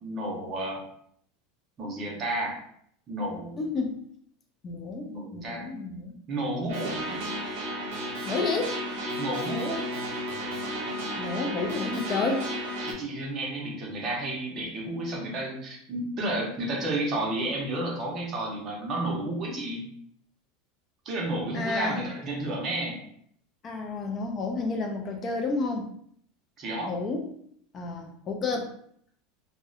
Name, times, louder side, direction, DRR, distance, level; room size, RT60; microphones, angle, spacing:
voice 1, 0.0-0.8 1.8-2.6 3.1-3.6 5.0-5.7 6.3-7.0 9.2-9.9 12.8-19.9 21.0-23.0 26.6-26.9, right 1 dB, 35° right, -1 dB, 0.7 m, -31 dB
voice 2, 3.6-4.0 4.6-6.1 6.7-7.2 8.3-8.8 11.2-12.5 21.5-22.1 23.6-25.9 26.9-27.3 27.7-28.7, left 3 dB, 30° left, 3 dB, 0.3 m, -31 dB
sound 1, 6.7-12.9, equal, 75° right, 0.7 m, -33 dB
2.6 x 2.1 x 2.4 m, 0.67 s
supercardioid pair, 135°, 0 cm